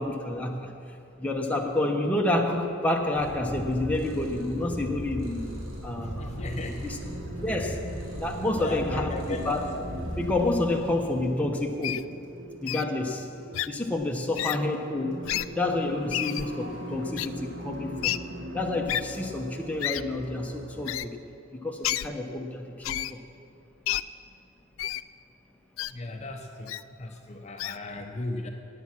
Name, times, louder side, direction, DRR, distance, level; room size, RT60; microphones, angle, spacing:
voice 1, 0.0-5.5 5.8-6.5 6.8-7.0 7.4-9.6 10.1-12.0 12.6-13.3 13.7-15.2 15.6-18.2 18.5-21.2 21.5-23.2, left 2 dB, 5° left, 1 dB, 1.0 m, -29 dB
Purr, 3.1-11.2, equal, 90° right, 3.2 m, -38 dB
sound 1, 4.0-20.9, right 1 dB, 65° right, 1.9 m, -41 dB
voice 2, 6.0-7.0 8.5-9.7 25.9-28.5, left 2 dB, 35° left, 4 dB, 0.8 m, -36 dB
Wild animals, 11.8-12.0 12.7-12.8 13.5-13.7 14.3-14.6 15.2-15.5 16.1-16.5 17.2-17.3 18.0-18.2 18.9-19.0 19.8-20.0 20.9-21.1 21.8-22.1 22.8-23.1 23.9-24.0 24.8-25.0 25.8-25.9 26.7-26.8 27.6-27.8, left 14 dB, 80° left, 0.3 m, -29 dB
17.5 x 8.4 x 6.0 m, 2.6 s
head